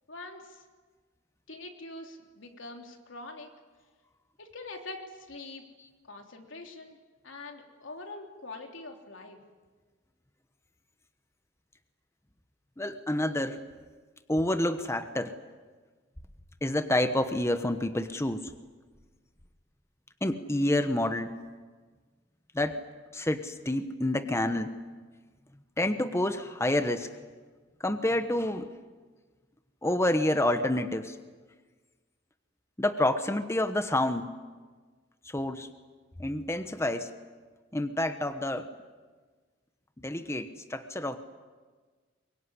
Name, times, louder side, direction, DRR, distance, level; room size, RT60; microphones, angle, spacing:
voice 1, 0.1-0.6 1.5-3.5 4.4-5.6 6.1-7.0 7.2-9.4, left 2 dB, 80° left, 3 dB, 3.3 m, -44 dB
voice 2, 12.8-13.6 14.3-15.4 16.6-18.5 20.2-21.3 22.5-22.8 23.1-24.7 25.8-27.1 27.8-28.7 29.8-31.2 32.8-34.3 35.3-35.7 36.2-37.1 37.7-38.7 40.0-41.2, left 1 dB, 15° left, 8 dB, 1.1 m, -28 dB
23.5 x 22.5 x 9.9 m, 1.4 s
head